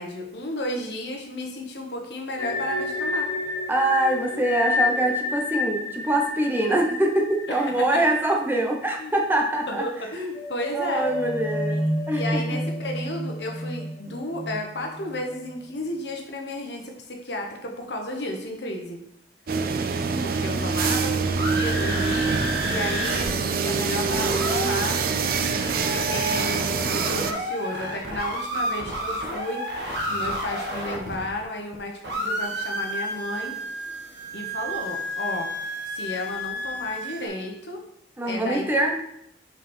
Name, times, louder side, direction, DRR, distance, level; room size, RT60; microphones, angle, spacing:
voice 1, 0.0-3.3 7.5-8.0 9.0-9.1 9.7-11.1 11.6-11.8 12.1-19.0 20.2-25.0 25.4-33.6 34.3-35.5 35.9-37.8 38.2-38.9, left 1 dB, 70° left, 2 dB, 1.3 m, -33 dB
sound 1, 2.4-9.2 9.5-9.6 10.2-15.5, left 2 dB, 10° left, 1.3 m, -30 dB
voice 2, 3.7-9.9 10.7-11.8 12.1-12.4 38.2-38.9, right 1 dB, 10° right, 1 dB, 0.9 m, -24 dB
sound 2, 19.5-27.3, right 5 dB, 55° right, 0.5 m, -25 dB
sound 3, 21.3-23.3 23.5-23.6 23.9-31.8 32.0-37.3, equal, 75° right, 1.3 m, -31 dB
5.4 x 4.9 x 4.5 m, 0.77 s
head